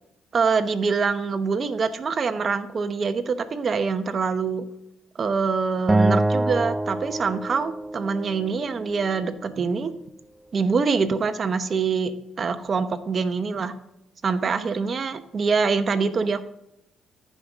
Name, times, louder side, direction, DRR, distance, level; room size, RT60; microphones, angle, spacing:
voice 1, 0.3-4.6 5.2-9.9 10.5-12.1 12.4-13.7 14.2-16.5, right 5 dB, 45° right, 10 dB, 0.9 m, -24 dB
Acoustic guitar, 5.9-9.1, right 2 dB, 15° right, 0.4 m, -25 dB
15.0 x 5.4 x 3.6 m, 0.82 s
cardioid pair, 90°, 0 cm